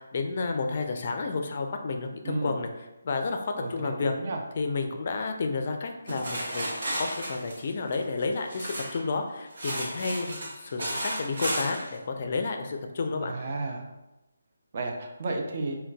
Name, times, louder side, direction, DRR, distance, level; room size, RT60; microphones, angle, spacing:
voice 1, 0.0-2.7 3.0-4.1 4.6-6.7 7.0-13.3, left 4 dB, 45° left, 5 dB, 0.3 m, -31 dB
voice 2, 2.2-2.6 3.6-4.4 13.2-13.9 14.7-15.8, right 3 dB, 45° right, 2 dB, 0.5 m, -33 dB
sound 1, 6.1-9.1 9.5-11.9, right 1 dB, 60° right, 1.0 m, -33 dB
3.7 x 2.2 x 2.3 m, 0.99 s
figure-of-eight pair, 155°, 0 cm